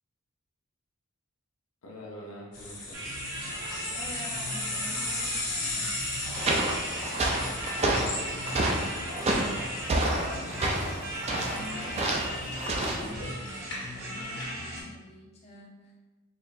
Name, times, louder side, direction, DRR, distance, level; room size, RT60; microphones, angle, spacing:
voice 1, 1.8-3.0 7.9-10.7, left 1 dB, 75° left, -3 dB, 0.6 m, -45 dB
sound 1, 2.5-14.5, left 2 dB, 60° left, 1.4 m, -37 dB
sound 2, 2.9-14.8, equal, 65° right, 0.9 m, -37 dB
voice 2, 3.9-5.4 5.7-6.0 11.5-15.9, left 1 dB, 30° left, -6 dB, 0.9 m, -47 dB
sound 3, 6.2-13.1, right 1 dB, 30° right, 0.3 m, -29 dB
4.2 x 2.8 x 2.5 m, 1.2 s
head